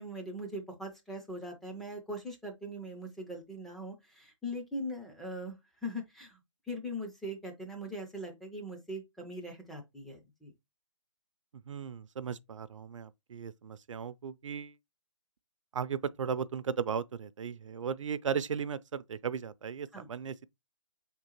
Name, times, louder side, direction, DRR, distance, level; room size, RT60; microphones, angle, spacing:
voice 1, 0.0-6.4 6.7-10.5 19.9-20.1, equal, ahead, 0.3 m, -41 dB
voice 2, 11.7-14.8 15.7-20.5, right 7 dB, 70° right, 0.5 m, -36 dB
4.7 x 3.7 x 2.9 m
hypercardioid pair, 150°, 16 cm